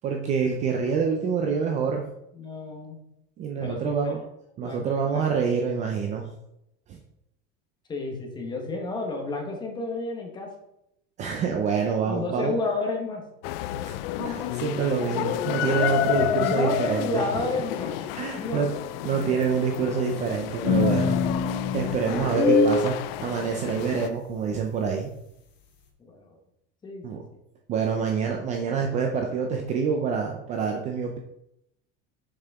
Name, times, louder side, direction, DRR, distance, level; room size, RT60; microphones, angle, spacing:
voice 1, 0.0-2.0 3.4-4.2 4.6-6.3 6.9-7.0 11.2-12.5 14.2-17.3 18.1-18.7 19.0-21.2 21.7-25.1 27.0-27.2 27.7-31.2, right 6 dB, 25° right, 2 dB, 0.5 m, -26 dB
voice 2, 2.3-3.0 3.6-4.1 4.6-5.3 7.9-10.5 12.0-13.2 16.2-18.1 18.4-19.4 26.0-26.4 26.8-27.2, left 3 dB, 15° left, 1 dB, 1.0 m, -32 dB
sound 1, 13.4-24.1, left 14 dB, 70° left, 0.5 m, -30 dB
sound 2, 20.7-22.9, left 3 dB, 35° left, 1.3 m, -22 dB
6.6 x 5.5 x 3.5 m, 0.81 s
cardioid pair, 175°, 30 cm